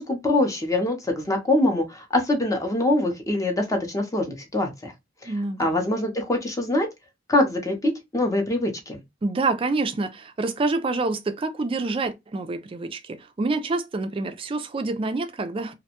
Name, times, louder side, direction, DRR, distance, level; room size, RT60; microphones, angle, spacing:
voice 1, 0.0-4.9 5.2-5.3 5.6-6.9 7.3-9.0, left 1 dB, 20° left, 0.6 m, -24 dB
voice 2, 5.2-5.8 9.2-15.7, right 3 dB, 30° right, 0.3 m, -27 dB
2.5 x 2.1 x 2.7 m
head